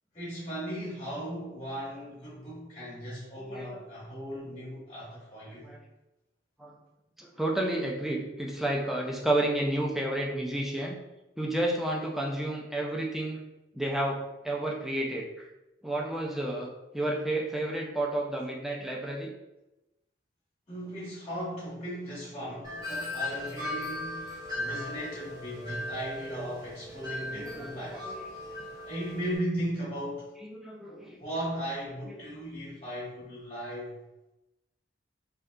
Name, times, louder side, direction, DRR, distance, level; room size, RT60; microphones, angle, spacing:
voice 1, 0.1-5.7 20.7-28.1 28.8-30.3 31.2-34.0, equal, 30° left, -9 dB, 1.3 m, -37 dB
voice 2, 3.4-3.8 5.6-5.8 6.6-6.7 7.2-11.0 11.4-13.4 13.7-15.5 15.8-19.3 27.1-28.2 30.5-31.2, right 1 dB, ahead, -2 dB, 0.4 m, -31 dB
Wind chime, 22.6-29.4, left 1 dB, 20° right, 0.9 m, -38 dB
3.5 x 2.7 x 2.3 m, 0.97 s
head